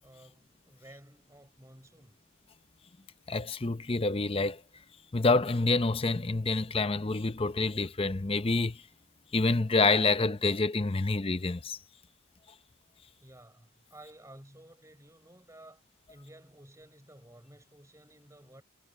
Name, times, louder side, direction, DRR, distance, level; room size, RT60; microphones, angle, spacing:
voice 1, 0.0-2.2 13.2-15.8 16.1-18.6, right 1 dB, 15° right, 6.1 m, -54 dB
voice 2, 3.3-4.6 5.1-8.8 9.3-11.8, left 3 dB, 25° left, 0.6 m, -27 dB
head